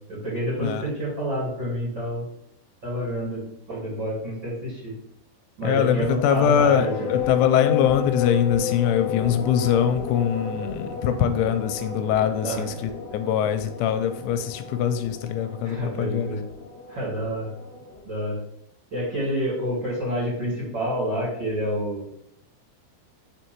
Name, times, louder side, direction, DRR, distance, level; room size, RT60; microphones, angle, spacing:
voice 1, 0.1-2.3 2.8-4.9 5.6-7.1 12.4-12.6 15.6-16.4 16.9-17.5 18.0-18.4 18.9-22.1, equal, 30° right, -8 dB, 2.6 m, -28 dB
voice 2, 5.6-16.3, left 9 dB, 85° left, 8 dB, 2.9 m, -23 dB
sound 1, 6.2-18.0, left 7 dB, 70° left, 2.6 m, -33 dB
7.0 x 4.4 x 4.5 m, 0.74 s
omnidirectional pair, 5.5 m